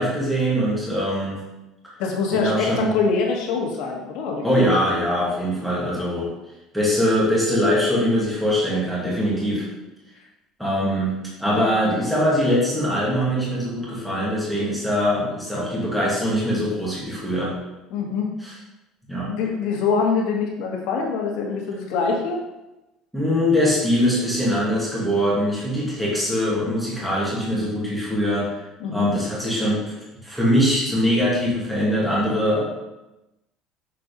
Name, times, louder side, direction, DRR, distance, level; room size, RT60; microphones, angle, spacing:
voice 1, 0.0-1.4 2.3-2.9 4.4-6.3 6.7-9.7 10.6-11.1 11.4-17.5 18.4-18.5 19.1-19.3 23.1-28.6 28.9-29.8 30.2-32.6, equal, ahead, -6 dB, 1.9 m, -22 dB
voice 2, 2.0-4.8 17.9-18.3 19.2-22.4 28.8-29.1, left 5 dB, 70° left, 0 dB, 1.7 m, -24 dB
6.7 x 4.2 x 5.2 m, 0.97 s
cardioid pair, 170°, 0 cm